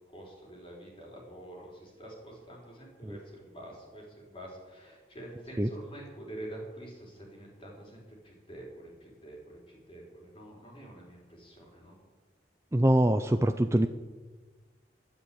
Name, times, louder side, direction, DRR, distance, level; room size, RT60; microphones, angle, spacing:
voice 1, 0.1-12.0, right 1 dB, 30° left, -2 dB, 4.6 m, -47 dB
voice 2, 12.7-13.9, right 1 dB, 15° right, 8 dB, 0.5 m, -24 dB
12.5 x 11.0 x 8.8 m, 1.3 s
head